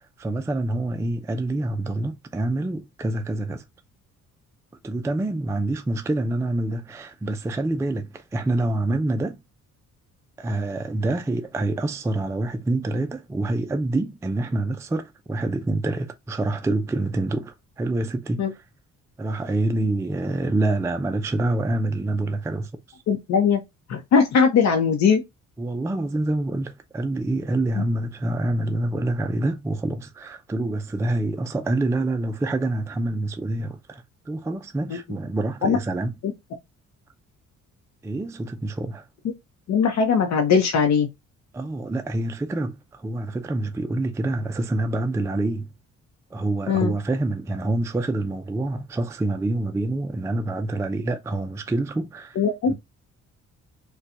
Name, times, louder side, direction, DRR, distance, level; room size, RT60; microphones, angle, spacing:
voice 1, 0.0-3.6 4.8-9.4 10.4-18.4 19.2-23.0 25.6-36.1 38.0-39.1 41.5-45.7 46.3-52.4 52.7-52.8, right 2 dB, 10° right, 0.4 m, -26 dB
voice 2, 23.1-23.6 23.9-25.2 27.8-27.9 34.9-35.0 35.6-35.8 36.2-36.3 39.7-41.1 46.7-46.9 52.4-52.7, left 6 dB, 65° left, 0.8 m, -20 dB
4.2 x 2.3 x 2.5 m
cardioid pair, 90°, 30 cm